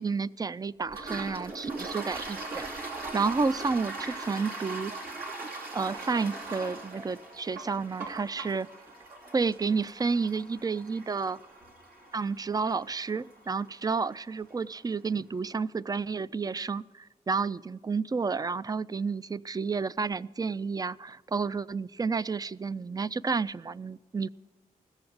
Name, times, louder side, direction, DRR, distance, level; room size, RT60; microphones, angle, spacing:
voice 1, 0.0-2.9 3.1-5.1 5.7-8.7 9.3-11.4 12.1-24.3, right 4 dB, 25° right, 18 dB, 0.4 m, -31 dB
Toilet flush, 0.9-14.2, right 3 dB, 85° right, 2.7 m, -40 dB
15.5 x 7.0 x 7.9 m, 1.3 s
cardioid pair, 55°, 15 cm